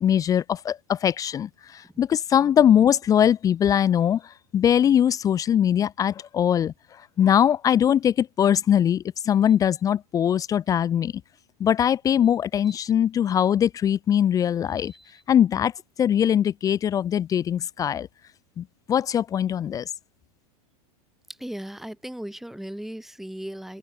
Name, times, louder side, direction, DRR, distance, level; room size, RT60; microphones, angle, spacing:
voice 1, 0.0-6.7 7.2-11.1 11.6-14.9 15.3-15.7 16.0-18.1 18.6-19.9, left 9 dB, 20° left, 0.5 m, -21 dB
voice 2, 21.4-23.8, right 1 dB, ahead, 7.1 m, -37 dB
open air
supercardioid pair, 140°, 20 cm